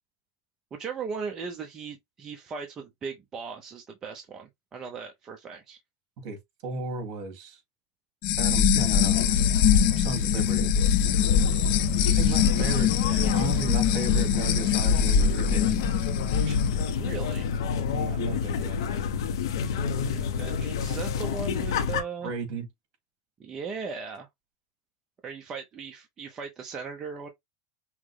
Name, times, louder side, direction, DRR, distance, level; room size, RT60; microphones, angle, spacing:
voice 1, 0.7-5.8 11.4-12.4 16.9-17.5 20.0-22.3 23.4-24.3 25.2-27.3, right 5 dB, 25° right, 0.7 m, -38 dB
voice 2, 6.2-7.6 8.4-9.5 9.9-10.7 12.2-16.0 16.4-16.6 17.9-18.8 22.2-22.7, right 4 dB, 55° right, 2.2 m, -35 dB
sound 1, 8.2-16.9, left 8 dB, 50° left, 0.7 m, -23 dB
sound 2, 8.8-22.0, left 6 dB, 90° left, 0.8 m, -30 dB
5.7 x 2.2 x 3.2 m
supercardioid pair, 150°, 2 cm